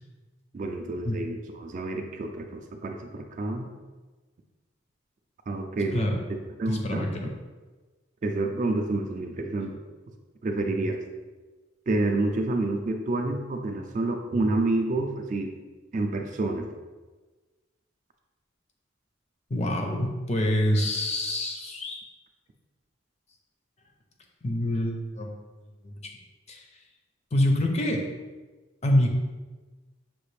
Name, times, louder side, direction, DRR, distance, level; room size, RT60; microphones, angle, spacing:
voice 1, 0.5-3.7 5.5-7.1 8.2-9.8 10.4-11.0 11.9-15.5 15.9-16.7, right 2 dB, 40° right, 4 dB, 0.3 m, -28 dB
voice 2, 6.7-7.3 19.5-22.0 24.4-25.3 25.8-25.9 26.5-26.6 27.3-28.0 28.8-29.1, left 1 dB, 35° left, 2 dB, 0.5 m, -26 dB
5.8 x 2.4 x 3.2 m, 1.3 s
head